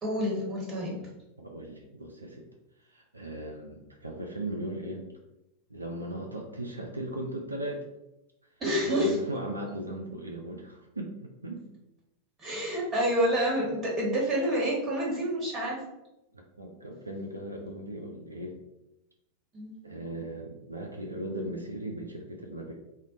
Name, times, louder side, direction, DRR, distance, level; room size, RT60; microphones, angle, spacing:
voice 1, 0.0-1.0 8.6-9.2 12.4-15.8 19.5-19.7, equal, 20° right, -4 dB, 1.1 m, -28 dB
voice 2, 1.0-2.5 2.9-5.2 5.7-7.8 8.8-11.7 16.3-18.6 19.8-22.7, right 1 dB, 80° right, 1 dB, 0.3 m, -38 dB
2.1 x 2.0 x 3.8 m, 0.91 s
figure-of-eight pair, 90°, 0 cm